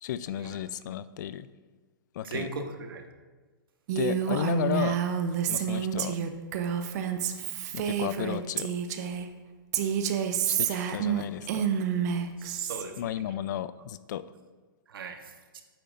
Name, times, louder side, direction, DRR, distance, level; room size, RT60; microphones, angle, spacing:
voice 1, 0.0-1.5 2.1-2.5 4.0-5.0 5.5-6.2 7.7-8.7 10.5-11.6 13.0-14.2, left 11 dB, 55° left, 15 dB, 0.4 m, -33 dB
voice 2, 2.2-3.0 12.4-12.9 14.9-15.6, right 3 dB, 75° right, 5 dB, 1.3 m, -38 dB
Female speech woman speaking, 3.9-9.3 9.7-12.8, right 8 dB, 45° right, 0.8 m, -29 dB
12.0 x 8.7 x 2.5 m, 1.3 s
hypercardioid pair, 135°, 12 cm